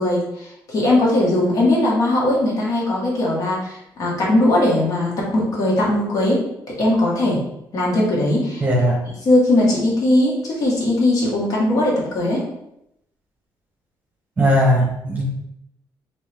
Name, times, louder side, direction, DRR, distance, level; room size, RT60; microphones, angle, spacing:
voice 1, 0.0-6.4 6.7-7.4 7.7-8.6 9.2-12.4, left 1 dB, 50° left, -4 dB, 1.2 m, -19 dB
voice 2, 8.6-9.0 14.4-15.2, equal, 20° right, -2 dB, 0.9 m, -17 dB
3.5 x 3.0 x 3.4 m, 0.81 s
cardioid pair, 170°, 8 cm